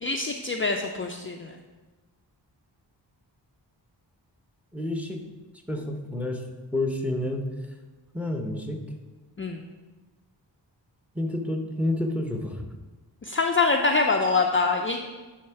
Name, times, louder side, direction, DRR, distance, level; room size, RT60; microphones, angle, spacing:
voice 1, 0.0-1.5 9.4-9.6 13.2-15.0, left 3 dB, 30° left, 2 dB, 0.4 m, -24 dB
voice 2, 4.7-5.2 5.7-6.4 6.7-7.4 8.1-8.8 11.1-12.6, left 1 dB, 5° right, 3 dB, 0.8 m, -29 dB
9.6 x 3.5 x 5.7 m, 1.3 s
wide cardioid pair, 135°, 43 cm